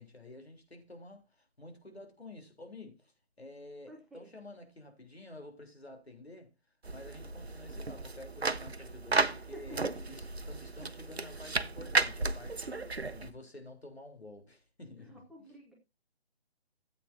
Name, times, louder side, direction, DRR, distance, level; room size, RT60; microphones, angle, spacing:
voice 1, 0.0-6.5 6.9-15.3, left 2 dB, 80° left, 3.5 m, -50 dB
voice 2, 3.9-4.4 9.3-9.9 11.2-11.6 12.8-13.0 15.0-15.7, right 1 dB, ahead, 1.1 m, -52 dB
sound 1, 6.8-13.3, right 3 dB, 85° right, 0.9 m, -34 dB
14.0 x 8.3 x 2.7 m
figure-of-eight pair, 140°, 31 cm